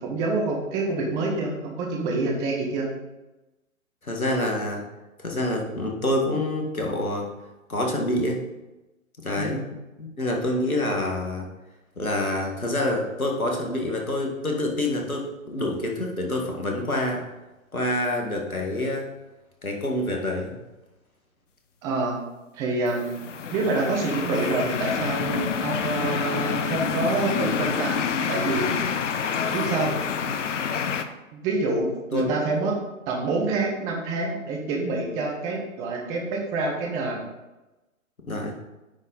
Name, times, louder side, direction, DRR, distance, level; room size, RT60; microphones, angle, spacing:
voice 1, 0.0-2.9 9.4-9.6 21.8-22.2 22.5-23.2 23.5-28.9 29.5-29.9 31.3-32.8 33.1-37.2, right 3 dB, 10° right, 0 dB, 0.5 m, -27 dB
voice 2, 4.0-4.8 5.2-7.3 7.7-8.4 9.2-9.6 10.0-11.5 12.0-17.3 17.7-19.1 19.6-20.6 32.1-32.3 38.2-38.5, left 1 dB, 85° left, 1 dB, 1.8 m, -27 dB
sound 1, 23.0-31.1, left 6 dB, 60° left, 0.7 m, -27 dB
9.6 x 4.0 x 4.0 m, 1.1 s
figure-of-eight pair, 120°, 41 cm